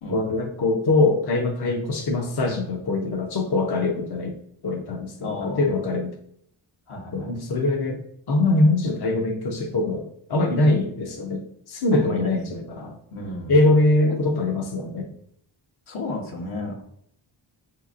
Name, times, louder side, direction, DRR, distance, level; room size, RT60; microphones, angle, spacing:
voice 1, 0.1-4.4 4.6-6.1 7.1-8.0 8.3-11.4 11.7-13.0 13.5-15.1, left 2 dB, 55° left, 1 dB, 0.7 m, -22 dB
voice 2, 5.2-5.7 6.9-7.3 11.9-12.3 13.1-13.6 14.1-14.2 15.9-16.8, left 2 dB, 80° left, -1 dB, 1.1 m, -33 dB
5.1 x 2.9 x 2.4 m, 0.69 s
wide cardioid pair, 65°, 48 cm